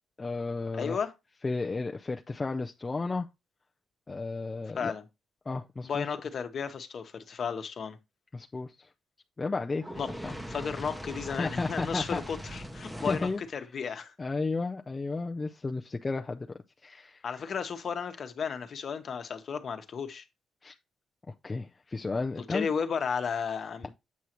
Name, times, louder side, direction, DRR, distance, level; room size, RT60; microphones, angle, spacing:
voice 1, 0.2-1.0 1.4-3.3 4.1-4.9 5.5-6.1 8.3-8.9 9.4-9.8 10.2-10.3 11.4-12.2 13.1-13.4 14.2-16.5 16.8-17.2 20.6-20.8 21.4-22.7, left 3 dB, 20° left, 0.4 m, -33 dB
voice 2, 0.7-1.1 4.7-5.0 5.8-8.0 10.0-10.1 10.5-14.1 17.2-20.2 22.5-23.9, left 6 dB, 45° left, 1.0 m, -34 dB
Fire, 9.8-13.5, equal, 5° right, 0.7 m, -40 dB
8.2 x 6.3 x 3.0 m
cardioid pair, 135°, 0 cm